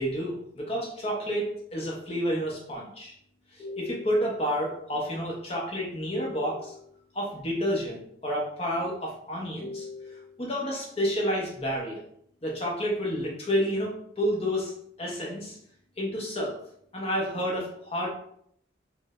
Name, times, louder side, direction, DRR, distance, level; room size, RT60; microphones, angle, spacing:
voice 1, 0.0-3.1 3.6-6.9 7.1-12.0 12.4-14.7 15.0-15.6 16.0-16.6 16.9-18.1, equal, 30° left, -3 dB, 0.7 m, -30 dB
4.5 x 2.0 x 2.4 m, 0.67 s
head